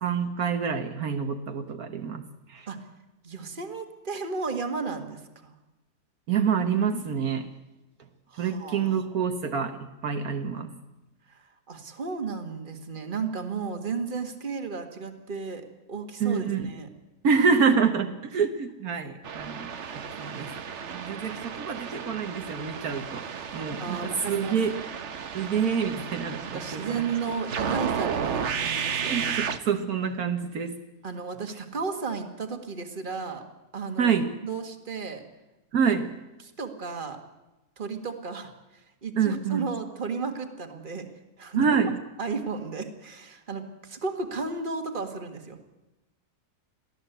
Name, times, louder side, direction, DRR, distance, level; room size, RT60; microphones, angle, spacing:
voice 1, 0.0-2.7 6.3-7.5 8.4-10.7 16.2-16.7 17.2-20.5 20.9-23.3 23.5-24.8 25.3-27.0 29.1-30.8 34.0-34.3 35.7-36.1 39.2-39.7 41.6-42.0, right 6 dB, 70° right, 7 dB, 1.6 m, -27 dB
voice 2, 3.2-5.6 8.3-9.0 11.3-16.9 21.3-21.4 23.8-24.6 26.5-29.3 31.0-33.4 33.7-34.1 34.4-35.2 35.8-35.9 36.6-37.2 37.8-41.1 41.4-41.8 42.2-45.6, right 4 dB, 35° right, 6 dB, 1.9 m, -34 dB
sound 1, 19.2-29.6, right 7 dB, 50° right, 1.2 m, -33 dB
23.0 x 15.5 x 8.1 m, 1.0 s
omnidirectional pair, 1.6 m